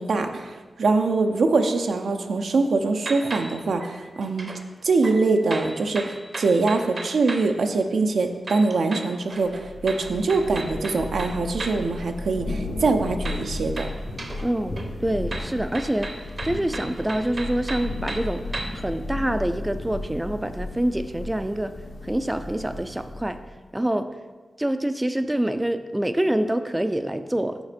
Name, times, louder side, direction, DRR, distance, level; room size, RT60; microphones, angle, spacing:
voice 1, 0.0-4.5 4.8-13.9, right 3 dB, 80° right, 6 dB, 0.5 m, -23 dB
sound 1, 3.0-4.6 5.0-7.6 8.4-11.9 13.2-14.5 14.8-18.9, right 2 dB, 50° right, 0.7 m, -36 dB
Thunder / Rain, 9.4-23.5, left 2 dB, 80° left, 0.9 m, -34 dB
voice 2, 14.4-21.8 22.0-23.4 23.7-24.2 24.6-27.6, right 1 dB, 15° right, 10 dB, 0.3 m, -26 dB
7.1 x 4.1 x 5.0 m, 1.3 s
wide cardioid pair, 75°, 0 cm